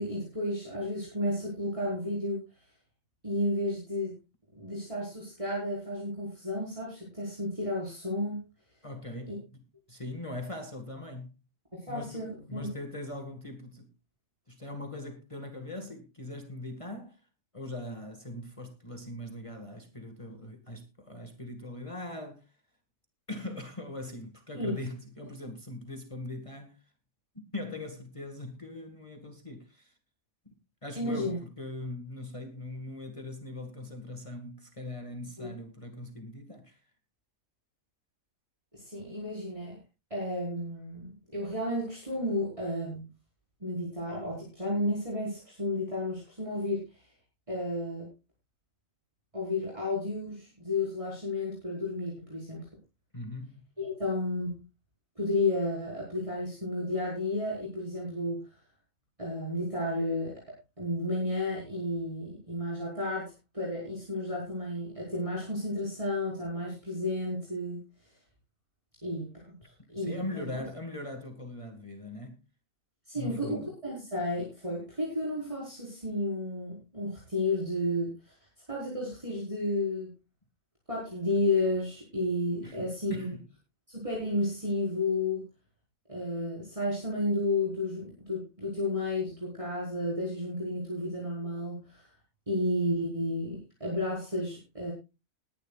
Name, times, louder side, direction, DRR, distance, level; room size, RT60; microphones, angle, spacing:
voice 1, 0.0-2.4 3.2-4.2 4.5-8.4 9.3-9.4 11.7-12.7 24.5-24.8 31.0-31.4 35.4-35.5 38.7-39.8 40.1-41.1 41.3-43.0 43.6-46.9 47.5-48.1 49.3-52.6 53.8-54.6 55.2-58.4 59.2-60.4 60.8-67.8 69.0-69.3 69.9-70.2 73.1-78.3 78.7-80.1 80.9-83.3 83.9-85.4 86.1-92.1 92.5-94.9, left 1 dB, 25° right, 4.8 m, -32 dB
voice 2, 8.8-9.6 9.9-11.4 11.9-13.9 14.5-17.2 17.5-22.5 23.3-26.8 27.3-29.9 30.5-30.6 30.8-36.8 53.1-53.6 70.0-72.4 73.2-73.6 82.6-82.8 83.1-83.4, left 2 dB, 25° left, 1.9 m, -41 dB
20.0 x 11.0 x 2.4 m
omnidirectional pair, 1.4 m